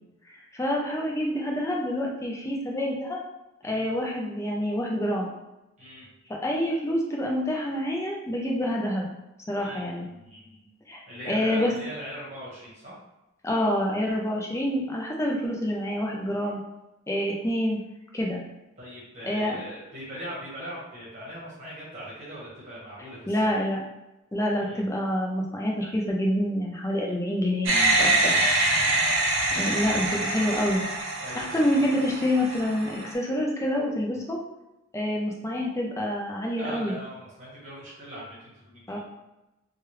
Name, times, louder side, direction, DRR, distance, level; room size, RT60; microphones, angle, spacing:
voice 1, 0.5-3.2 3.6-5.3 6.4-9.1 9.5-10.1 10.9-11.0 11.3-11.7 13.4-16.6 17.1-17.8 18.1-18.4 19.2-19.6 23.3-23.8 24.3-28.3 29.6-30.8 31.4-34.4 34.9-37.0 38.9-39.0, equal, 15° left, -1 dB, 0.4 m, -27 dB
voice 2, 9.6-10.7 11.1-13.0 18.8-23.6 24.6-24.8 28.7-29.2 31.2-31.9 36.6-39.0, equal, 35° right, -8 dB, 1.1 m, -40 dB
sound 1, 27.7-33.1, right 2 dB, 70° right, 0.6 m, -25 dB
3.3 x 2.3 x 3.0 m, 0.96 s
head